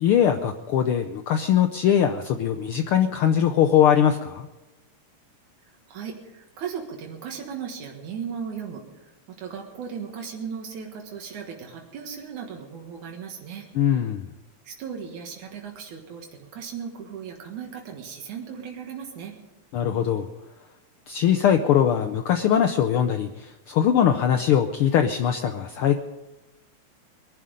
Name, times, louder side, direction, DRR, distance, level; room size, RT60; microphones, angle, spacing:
voice 1, 0.0-4.5 13.7-14.2 19.7-20.3 21.1-26.0, left 9 dB, 80° left, 8 dB, 1.2 m, -21 dB
voice 2, 5.9-13.7 14.6-19.3, right 7 dB, 85° right, 1 dB, 3.0 m, -37 dB
21.5 x 11.5 x 5.2 m, 1.0 s
omnidirectional pair, 3.3 m